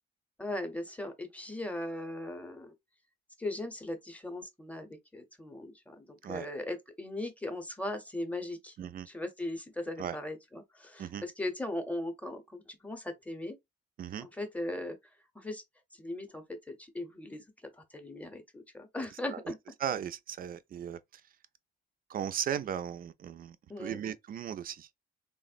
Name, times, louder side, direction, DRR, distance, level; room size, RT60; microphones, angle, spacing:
voice 1, 0.4-2.7 3.4-8.7 9.1-13.5 14.2-15.0 15.3-15.6 16.0-17.4 17.8-19.6 23.7-24.0, left 1 dB, 5° left, 0.7 m, -38 dB
voice 2, 19.1-19.5 19.8-21.2 22.1-24.9, right 9 dB, 45° right, 0.4 m, -37 dB
3.5 x 2.0 x 2.4 m
cardioid pair, 90°, 20 cm